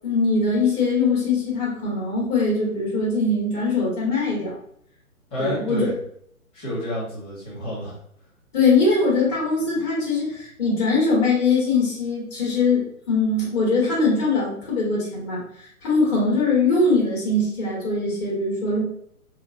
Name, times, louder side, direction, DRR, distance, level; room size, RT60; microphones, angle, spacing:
voice 1, 0.0-4.5 5.4-5.9 8.5-18.8, left 3 dB, 30° left, -5 dB, 1.4 m, -22 dB
voice 2, 5.3-5.9 6.5-8.0, left 1 dB, 10° left, -9 dB, 1.2 m, -29 dB
3.8 x 2.2 x 2.6 m, 0.68 s
figure-of-eight pair, 135°, 43 cm